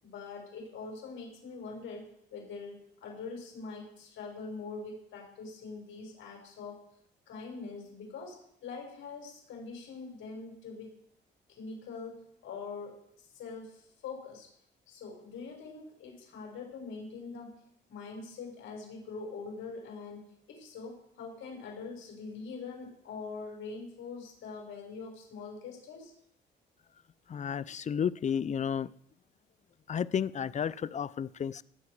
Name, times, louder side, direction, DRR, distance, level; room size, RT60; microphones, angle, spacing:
voice 1, 0.0-6.8 7.3-11.0 11.5-14.5 14.9-17.6 17.9-20.2 20.5-26.1, left 4 dB, 75° left, 0 dB, 5.7 m, -43 dB
voice 2, 27.3-28.9 29.9-31.6, left 8 dB, 35° left, 19 dB, 0.5 m, -32 dB
19.0 x 8.1 x 4.9 m, 0.71 s
cardioid pair, 90°, 20 cm